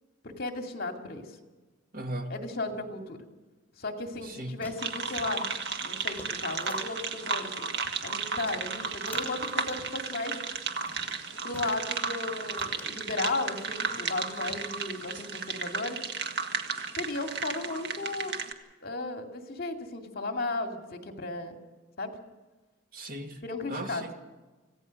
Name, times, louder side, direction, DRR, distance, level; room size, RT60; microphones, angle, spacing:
voice 1, 0.2-1.3 2.3-3.2 3.8-5.4 5.8-7.7 8.0-10.4 11.4-16.0 17.0-18.4 18.8-21.6 22.0-22.1 23.4-24.0, left 2 dB, 50° left, 4 dB, 2.4 m, -35 dB
voice 2, 1.9-2.4 4.2-4.6 22.9-23.4 23.7-24.1, right 1 dB, 50° right, 5 dB, 2.0 m, -37 dB
sound 1, 4.1-7.0 7.4-8.2 8.4-10.0 10.5-10.6 10.9-11.8 12.2-12.3 12.6-14.2 14.5-15.1, left 1 dB, 10° left, 3.0 m, -49 dB
sound 2, 4.8-18.5, right 5 dB, 65° right, 1.7 m, -34 dB
26.0 x 16.5 x 6.5 m, 1.2 s
head